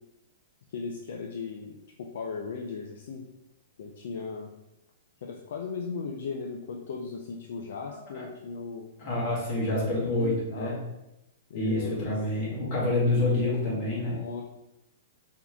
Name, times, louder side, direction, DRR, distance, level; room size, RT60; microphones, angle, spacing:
voice 1, 0.7-3.3 3.8-4.5 5.2-8.9 9.5-10.8 11.5-12.1 14.1-14.4, left 5 dB, 55° left, 1 dB, 0.4 m, -37 dB
voice 2, 7.9-8.2 9.0-10.8 11.5-14.2, left 2 dB, 25° left, -5 dB, 1.4 m, -27 dB
4.2 x 2.9 x 3.4 m, 0.92 s
hypercardioid pair, 175°, 0 cm